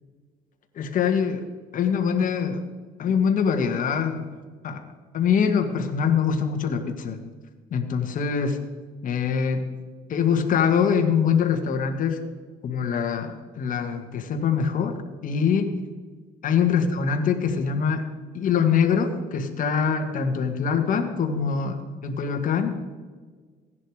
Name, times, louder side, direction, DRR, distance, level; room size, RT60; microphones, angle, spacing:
voice 1, 0.8-1.5 1.7-2.6 3.0-4.3 4.6-4.8 5.1-7.2 7.7-8.6 9.0-9.7 10.1-12.2 12.6-15.0 15.2-15.7 16.4-18.0 18.3-22.8, left 6 dB, 50° left, 5 dB, 1.8 m, -23 dB
16.0 x 10.5 x 4.9 m, 1.5 s
cardioid pair, 110°, 17 cm